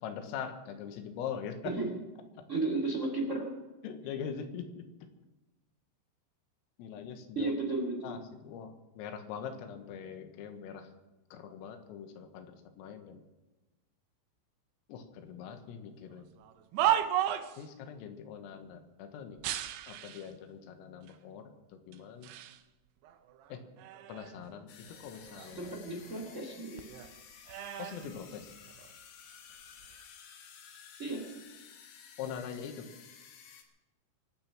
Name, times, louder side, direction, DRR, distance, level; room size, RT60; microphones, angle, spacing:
voice 1, 0.0-1.8 2.4-2.5 3.8-4.9 6.8-7.5 8.0-10.9 11.3-13.2 14.9-16.3 17.6-19.5 19.8-22.3 23.5-23.6 24.1-25.7 27.8-28.5 32.2-32.9, left 7 dB, 90° left, 7 dB, 4.1 m, -42 dB
voice 2, 2.5-3.5 7.3-8.1 25.4-26.9 31.0-31.3, right 2 dB, 25° right, 2 dB, 1.5 m, -34 dB
sound 1, 16.4-17.7 19.4-20.3 21.1-21.2 21.9-22.6 23.0-24.5 24.9-26.5 26.8-28.9 29.7-30.0, right 11 dB, 85° right, 2.3 m, -35 dB
sound 2, 24.7-33.6, left 7 dB, 70° left, 3.8 m, -54 dB
24.0 x 9.2 x 6.0 m, 1.1 s
omnidirectional pair, 5.9 m